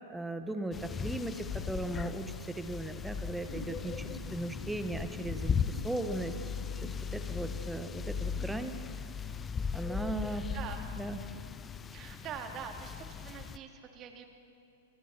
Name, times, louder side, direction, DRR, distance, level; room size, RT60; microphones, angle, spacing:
voice 1, 0.1-6.3 6.8-8.7 9.7-10.4 10.9-11.2, right 2 dB, 5° right, 8 dB, 1.4 m, -37 dB
sound 1, 0.7-13.6, left 6 dB, 20° left, 0.7 m, -38 dB
sound 2, 3.4-8.1, left 2 dB, 60° left, 6.7 m, -49 dB
voice 2, 10.3-10.8 11.9-14.3, right 7 dB, 30° right, 4 dB, 2.7 m, -44 dB
29.0 x 26.5 x 4.4 m, 2.7 s
figure-of-eight pair, 100°, 0 cm